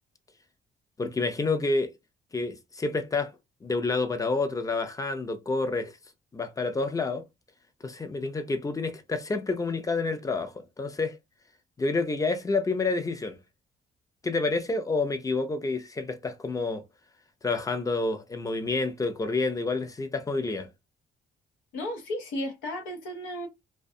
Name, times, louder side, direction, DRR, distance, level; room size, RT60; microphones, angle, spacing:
voice 1, 1.0-1.9 2.3-3.3 3.6-6.0 6.3-7.3 7.8-11.2 11.8-13.4 14.2-16.8 17.4-20.7, left 3 dB, 15° left, 0.5 m, -28 dB
voice 2, 21.7-23.5, left 1 dB, 90° left, 0.7 m, -34 dB
2.4 x 2.2 x 2.6 m
cardioid pair, 90°, 20 cm